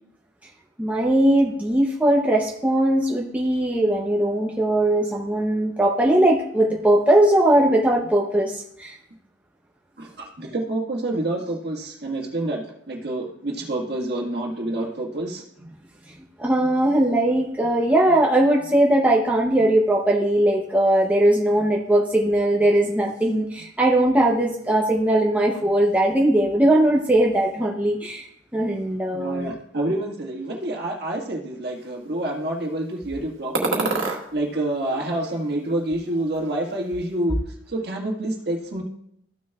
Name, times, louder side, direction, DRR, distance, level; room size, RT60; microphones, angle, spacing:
voice 1, 0.8-9.0 16.4-28.3 28.5-29.5, right 1 dB, 10° right, -2 dB, 0.7 m, -20 dB
voice 2, 10.0-15.7 29.1-37.4 37.7-38.8, right 1 dB, 55° right, 0 dB, 1.6 m, -28 dB
sound 1, 33.5-34.2 34.8-35.8 36.0-36.8, right 3 dB, 85° right, 1.6 m, -28 dB
14.0 x 6.2 x 2.4 m, 0.72 s
head